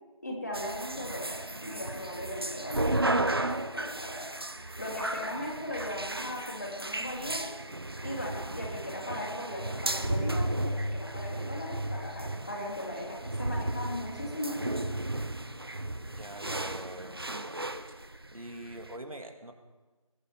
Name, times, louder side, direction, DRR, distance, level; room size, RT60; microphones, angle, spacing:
voice 1, 0.2-4.3 4.8-7.5 8.0-14.8, left 1 dB, 30° left, -2 dB, 2.9 m, -38 dB
sound 1, 0.5-18.9, right 1 dB, 45° right, 0.7 m, -34 dB
voice 2, 16.2-17.5 18.3-19.5, right 1 dB, 85° right, 5 dB, 2.6 m, -43 dB
20.0 x 8.1 x 6.0 m, 1.2 s
figure-of-eight pair, 175°, 18 cm